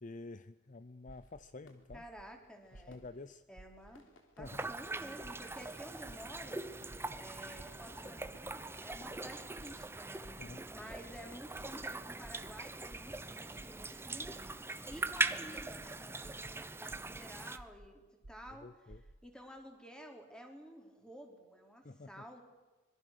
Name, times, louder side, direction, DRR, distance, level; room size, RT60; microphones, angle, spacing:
voice 1, 0.0-2.0 2.7-3.4 4.4-4.7 7.0-7.2 10.0-10.7 18.6-19.0 21.8-22.2, left 3 dB, 40° left, 13 dB, 0.7 m, -50 dB
sound 1, 1.1-14.0, left 1 dB, 85° left, 3.6 m, -67 dB
sound 2, 1.1-1.4 1.9-2.2 2.7-3.1 3.6-3.9 4.4-4.7 5.2-5.6 6.1-6.4 6.9-7.2 7.6-7.9 8.2-8.5 8.9-9.2 9.6-9.9 10.2-10.5 10.9-11.2 11.6-11.9 12.2-12.5 12.9-13.2 13.6-13.9 14.2-14.5 14.9-15.2 15.6-15.9 16.2-16.5 16.9-17.2 17.6-17.9 18.2-18.5 18.9-19.1, right 1 dB, 80° right, 1.5 m, -54 dB
voice 2, 1.9-3.0 3.5-4.1 4.4-18.7 19.2-22.5, equal, 5° left, 3 dB, 3.8 m, -52 dB
sound 3, 4.4-17.6, right 2 dB, 15° right, 1.0 m, -41 dB
25.5 x 22.0 x 6.7 m, 1.2 s
head